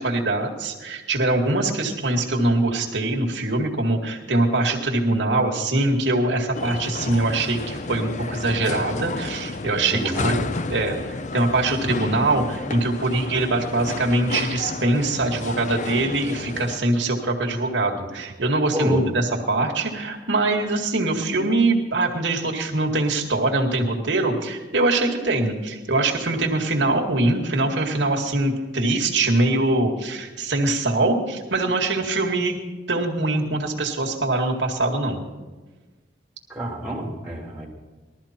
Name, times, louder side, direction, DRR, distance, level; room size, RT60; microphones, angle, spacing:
voice 1, 0.0-32.6 32.9-35.2, right 2 dB, 80° right, 0 dB, 2.0 m, -23 dB
sound 1, 6.5-16.8, left 3 dB, 40° left, 0.5 m, -31 dB
voice 2, 9.9-10.4 18.7-19.1 36.5-37.7, equal, 5° right, -4 dB, 3.7 m, -27 dB
20.0 x 13.5 x 4.4 m, 1.3 s
head